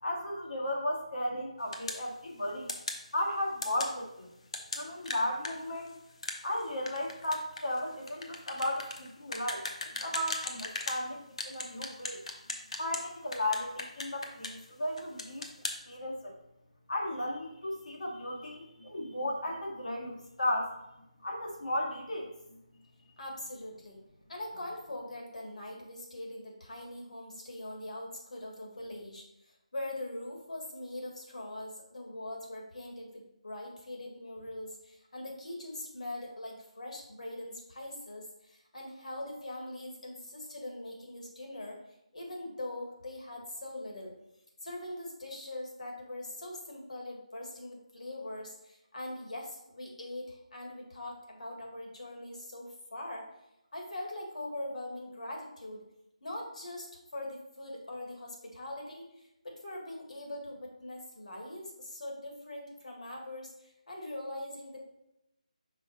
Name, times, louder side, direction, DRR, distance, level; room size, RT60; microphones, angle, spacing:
voice 1, 0.0-2.7 3.1-4.3 4.7-5.9 6.4-9.7 10.0-12.2 12.8-15.4 15.9-16.4 16.9-20.8 21.2-22.3, left 1 dB, 90° left, -1 dB, 1.9 m, -35 dB
sound 1, 1.7-2.0 2.7-3.0 3.6-3.9 4.5-11.0 11.4-13.0 13.3-14.7 15.0-15.8, left 2 dB, 55° left, 0.8 m, -38 dB
voice 2, 23.2-24.0 24.3-41.8 42.1-44.1 44.6-53.3 53.7-55.8 56.2-64.8, left 1 dB, 70° left, 0 dB, 2.0 m, -42 dB
5.5 x 4.2 x 4.2 m, 0.87 s
figure-of-eight pair, 170°, 4 cm